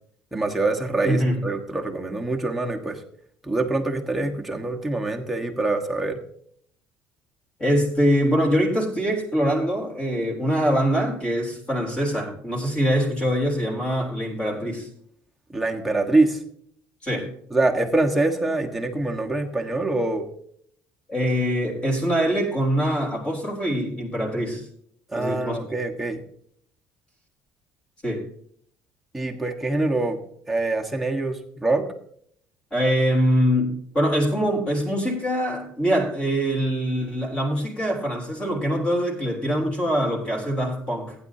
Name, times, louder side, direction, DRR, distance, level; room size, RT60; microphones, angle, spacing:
voice 1, 0.3-3.0 3.4-6.2 15.5-16.4 17.5-20.3 25.1-26.2 29.1-30.2 30.5-31.9, right 2 dB, 5° right, 0 dB, 1.4 m, -24 dB
voice 2, 1.0-1.4 7.6-14.9 17.0-17.3 21.1-24.7 25.1-25.6 28.0-28.2 32.7-41.2, equal, 20° left, -1 dB, 3.4 m, -23 dB
15.5 x 9.8 x 2.8 m, 0.64 s
cardioid pair, 145°, 5 cm